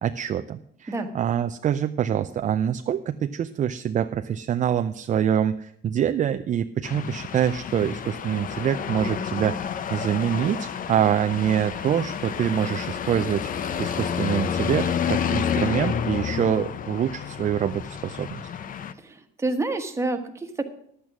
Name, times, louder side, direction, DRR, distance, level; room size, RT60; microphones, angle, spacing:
voice 1, 0.0-9.6 9.9-18.4, right 9 dB, 35° right, 8 dB, 0.5 m, -25 dB
sound 1, 6.8-18.9, left 8 dB, 40° left, 0.7 m, -30 dB
voice 2, 18.9-20.6, right 2 dB, 15° right, 5 dB, 1.4 m, -28 dB
11.0 x 8.5 x 6.0 m, 0.70 s
cardioid pair, 125°, 20 cm